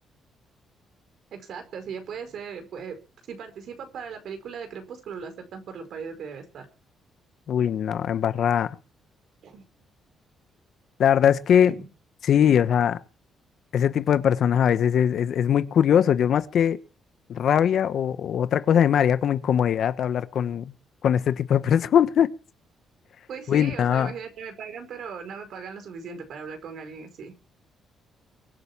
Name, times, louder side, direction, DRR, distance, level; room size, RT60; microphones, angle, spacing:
voice 1, 1.3-3.0 3.3-6.7 9.4-9.6 11.7-11.8 23.3-27.3, right 6 dB, 70° right, 5.2 m, -38 dB
voice 2, 7.5-8.7 11.0-11.7 12.3-13.0 13.7-16.8 17.3-20.7 21.0-22.3 23.5-24.1, left 9 dB, 65° left, 1.2 m, -21 dB
23.5 x 7.9 x 7.3 m
cardioid pair, 90°, 0 cm